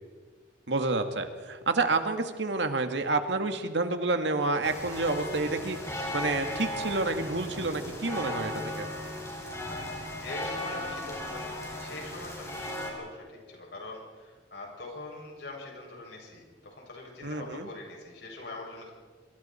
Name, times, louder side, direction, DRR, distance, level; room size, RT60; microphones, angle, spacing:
voice 1, 0.7-5.8 6.1-8.9 17.2-17.7, right 3 dB, 75° right, 6 dB, 2.1 m, -29 dB
sound 1, 4.6-12.9, left 1 dB, 15° left, 5.8 m, -36 dB
voice 2, 10.2-18.9, left 2 dB, 65° left, -1 dB, 7.1 m, -43 dB
27.5 x 26.0 x 4.5 m, 1.5 s
head